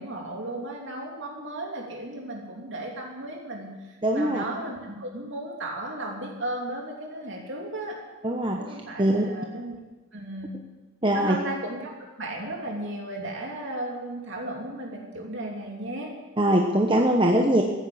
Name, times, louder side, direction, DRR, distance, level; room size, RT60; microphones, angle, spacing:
voice 1, 0.0-3.7 4.1-8.0 8.6-9.8 10.1-10.6 11.1-16.1, right 1 dB, 55° right, -1 dB, 3.1 m, -35 dB
voice 2, 4.0-4.4 8.2-8.6 9.0-9.2 11.0-11.4 16.4-17.6, right 1 dB, 20° right, 1 dB, 1.0 m, -21 dB
15.0 x 8.9 x 7.9 m, 1.2 s
head